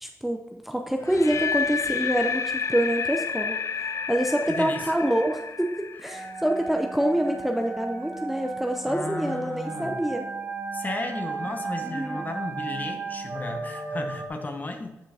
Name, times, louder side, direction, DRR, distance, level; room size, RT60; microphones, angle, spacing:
voice 1, 0.0-3.6 4.1-10.3 11.8-12.2, right 1 dB, 5° right, 4 dB, 0.6 m, -26 dB
sound 1, 1.0-7.0, left 6 dB, 60° left, 0.3 m, -30 dB
sound 2, 2.3-14.3, right 4 dB, 40° right, 1.1 m, -36 dB
voice 2, 4.5-4.9 8.8-10.0 10.7-15.0, left 2 dB, 30° left, 5 dB, 0.9 m, -34 dB
8.6 x 5.1 x 3.4 m, 0.99 s
wide cardioid pair, 110°, 6 cm